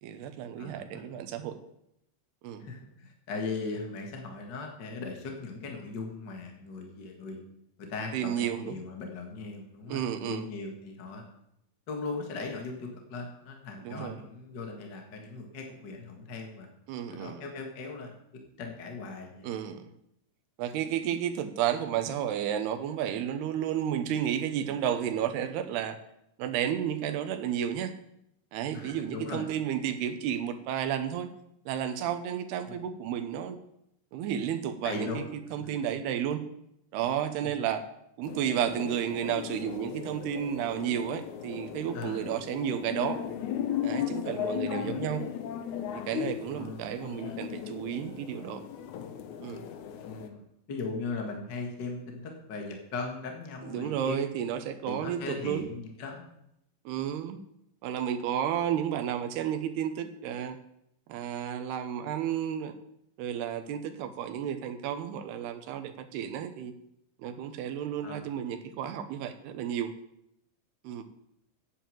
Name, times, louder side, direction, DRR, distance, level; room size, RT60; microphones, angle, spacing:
voice 1, 0.0-1.6 2.4-2.7 8.1-8.8 9.9-10.5 13.8-14.2 16.9-17.4 19.4-19.9 20.6-26.0 26.4-27.9 28.5-31.3 31.7-33.6 34.1-36.4 36.9-37.8 38.2-43.2 43.8-45.2 45.9-48.6 49.4-49.7 53.6-55.7 56.9-57.4 57.8-60.6 61.1-62.7 63.2-66.7 67.2-69.9 70.8-71.0, right 9 dB, 85° right, 8 dB, 3.0 m, -32 dB
voice 2, 0.6-1.0 2.6-7.4 7.8-11.2 11.9-16.7 17.1-18.2 18.6-19.5 28.7-29.5 32.7-32.8 34.8-35.3 35.6-35.8 37.4-37.5 41.9-42.3 44.7-45.0 46.5-47.4 50.0-50.4 50.7-54.2 54.8-56.2 68.0-68.3, left 3 dB, 50° left, 2 dB, 1.3 m, -39 dB
sound 1, 38.3-50.3, left 9 dB, 75° left, 1.7 m, -36 dB
9.9 x 8.7 x 7.7 m, 0.80 s
omnidirectional pair, 4.6 m